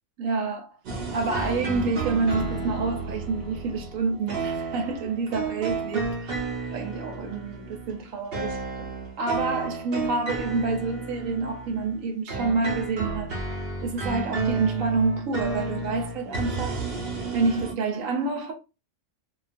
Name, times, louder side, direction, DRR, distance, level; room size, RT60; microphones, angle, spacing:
voice 1, 0.2-0.7 1.1-6.4 6.7-8.9 9.2-13.3 13.8-16.8 17.3-18.5, right 3 dB, 80° right, 1.0 m, -28 dB
sound 1, 0.9-12.0 12.3-17.7, right 4 dB, 55° right, 0.8 m, -32 dB
2.4 x 2.3 x 2.4 m
omnidirectional pair, 1.4 m